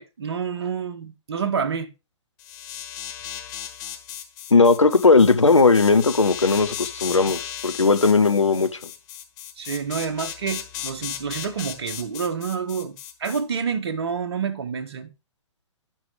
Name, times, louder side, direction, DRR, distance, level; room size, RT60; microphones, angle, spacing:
voice 1, 0.0-1.9 9.6-15.1, right 6 dB, 55° right, 1.3 m, -28 dB
sound 1, 2.4-13.4, left 10 dB, 35° left, 1.4 m, -36 dB
voice 2, 4.5-8.8, left 4 dB, 80° left, 0.9 m, -17 dB
8.9 x 5.8 x 4.8 m
figure-of-eight pair, 115°, 15 cm